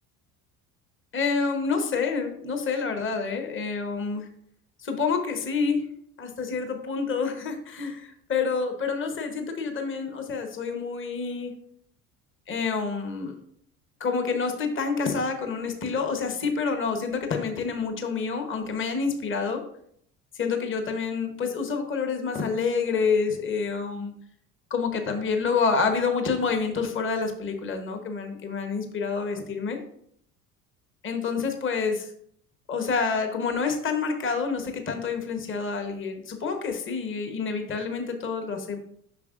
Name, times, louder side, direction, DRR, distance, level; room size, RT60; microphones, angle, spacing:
voice 1, 1.1-4.3 4.8-5.8 6.2-11.5 12.5-13.4 14.0-19.6 20.3-24.1 24.7-29.8 31.0-32.1 32.7-38.8, left 5 dB, 25° left, 5 dB, 1.1 m, -28 dB
6.9 x 5.9 x 2.5 m, 0.68 s
hypercardioid pair, 65°, 44 cm